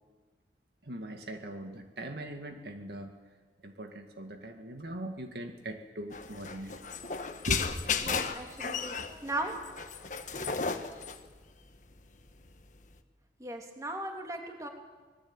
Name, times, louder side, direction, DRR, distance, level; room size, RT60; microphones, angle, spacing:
voice 1, 0.8-3.2 3.6-6.7 7.5-7.7, right 1 dB, 65° right, 4 dB, 2.0 m, -40 dB
sound 1, 6.1-13.0, left 5 dB, 45° left, 1.5 m, -35 dB
voice 2, 8.0-9.5 13.4-14.7, right 1 dB, 20° right, 2 dB, 3.1 m, -37 dB
25.5 x 20.5 x 8.9 m, 1.4 s
head